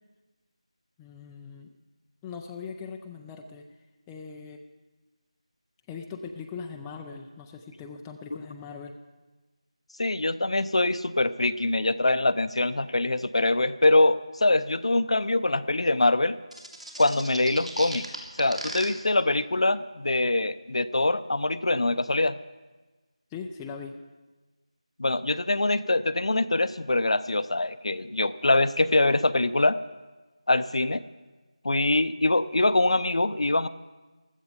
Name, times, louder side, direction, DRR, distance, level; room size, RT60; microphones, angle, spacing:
voice 1, 1.0-1.7 2.2-3.7 4.1-4.6 5.9-8.9 23.3-24.0, left 5 dB, 5° left, 2 dB, 0.4 m, -40 dB
voice 2, 10.0-16.3 17.0-18.0 18.4-22.4 25.0-29.8 30.5-31.0 31.6-33.7, left 2 dB, 60° left, 14 dB, 0.6 m, -24 dB
sound 1, 16.5-18.8, right 1 dB, 80° right, 3.3 m, -36 dB
15.5 x 13.0 x 5.2 m, 1.2 s
figure-of-eight pair, 165°, 4 cm